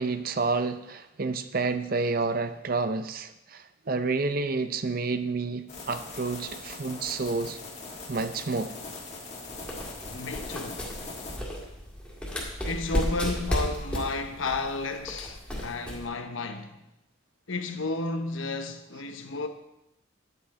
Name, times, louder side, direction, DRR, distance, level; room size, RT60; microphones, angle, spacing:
voice 1, 0.0-7.6 8.1-8.7, right 3 dB, 45° right, 0.6 m, -29 dB
sound 1, 5.7-11.4, left 3 dB, 30° left, 1.9 m, -41 dB
sound 2, 9.5-16.0, equal, 5° left, 2.0 m, -33 dB
voice 2, 10.1-10.9 12.6-16.8 17.5-19.5, left 3 dB, 75° left, 1.0 m, -32 dB
11.0 x 8.4 x 4.3 m
head